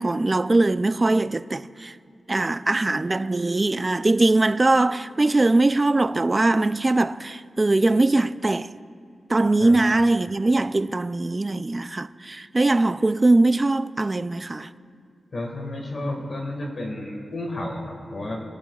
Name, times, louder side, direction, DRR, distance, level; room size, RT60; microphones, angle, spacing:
voice 1, 0.0-2.0 2.3-8.7 9.3-14.7, right 2 dB, 20° right, 0.3 m, -21 dB
voice 2, 15.3-18.4, left 1 dB, 45° left, 1.8 m, -31 dB
25.5 x 15.5 x 2.4 m
wide cardioid pair, 165°, 0 cm